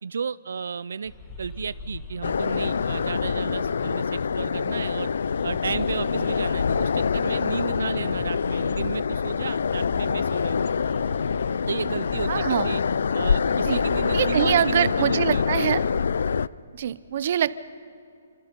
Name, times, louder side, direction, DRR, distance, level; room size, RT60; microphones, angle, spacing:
voice 1, 0.0-1.1 1.4-5.1 5.4-10.7 11.7-12.8 13.1-15.6, right 6 dB, 80° right, 17 dB, 0.5 m, -33 dB
sound 1, 1.0-14.4, left 2 dB, 10° left, 2.3 m, -42 dB
sound 2, 2.2-16.5, left 6 dB, 75° left, 0.5 m, -25 dB
voice 2, 12.3-12.7 13.7-13.8 14.1-15.8 16.7-17.6, right 9 dB, 40° right, 17 dB, 0.7 m, -24 dB
28.0 x 26.5 x 5.3 m, 2.6 s
hypercardioid pair, 170°, 0 cm